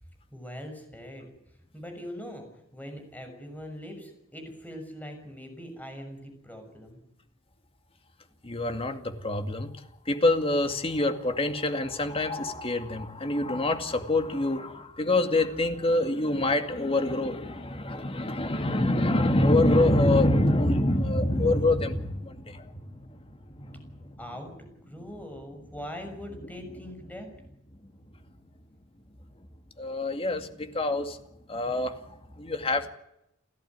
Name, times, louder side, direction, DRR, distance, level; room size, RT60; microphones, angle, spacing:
voice 1, 0.3-1.3 1.7-7.0 24.2-27.3, equal, 10° left, 5 dB, 6.4 m, -42 dB
voice 2, 8.4-9.7 10.1-23.3 23.5-24.1 29.8-31.2 31.5-32.9, left 1 dB, 25° left, 7 dB, 2.3 m, -26 dB
30.0 x 13.5 x 9.6 m, 0.83 s
head